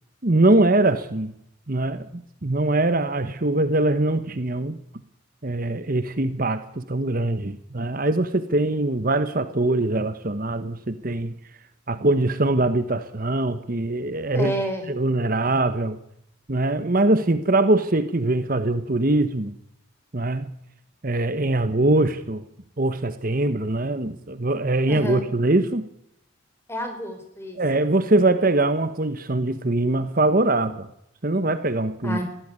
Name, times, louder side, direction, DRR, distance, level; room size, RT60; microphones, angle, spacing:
voice 1, 0.2-1.3 1.7-4.8 5.4-11.3 11.9-14.5 14.9-16.0 16.5-19.5 20.1-20.5 21.0-22.4 22.8-25.8 27.6-30.9 31.2-32.2, right 2 dB, 40° right, 11 dB, 1.1 m, -22 dB
voice 2, 14.3-14.8 24.9-25.3 26.7-27.6 32.0-32.2, equal, 10° left, 6 dB, 5.1 m, -29 dB
21.0 x 16.0 x 9.7 m, 0.77 s
head